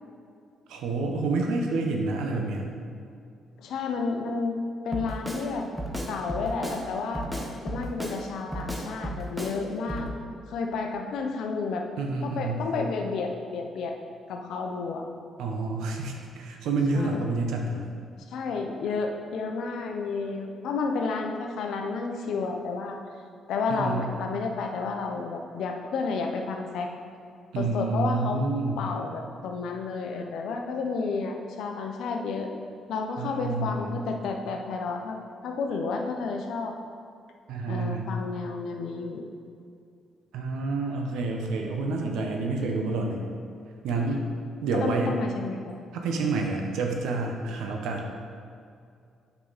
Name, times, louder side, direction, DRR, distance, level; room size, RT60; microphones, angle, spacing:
voice 1, 0.7-2.7 12.0-12.7 15.4-17.9 23.7-24.1 27.5-28.9 33.2-34.0 37.5-38.1 40.3-43.2 43.8-44.2 44.6-45.1 45.9-48.2, right 3 dB, 90° right, 2 dB, 1.0 m, -28 dB
voice 2, 3.6-4.6 4.8-5.7 6.1-7.3 7.6-10.1 10.5-11.9 12.2-14.0 14.3-15.0 16.9-17.2 18.3-23.0 23.5-26.9 27.6-28.4 28.8-32.5 32.9-35.2 35.4-36.7 37.7-39.3 44.8-45.7, left 4 dB, 80° left, 3 dB, 0.9 m, -31 dB
Drum kit, 4.9-5.5 5.8-6.8 7.1-8.2 8.5-9.6 9.9-10.1, right 1 dB, 5° right, 1.1 m, -33 dB
8.2 x 5.7 x 4.1 m, 2.4 s
cardioid pair, 90°, 0 cm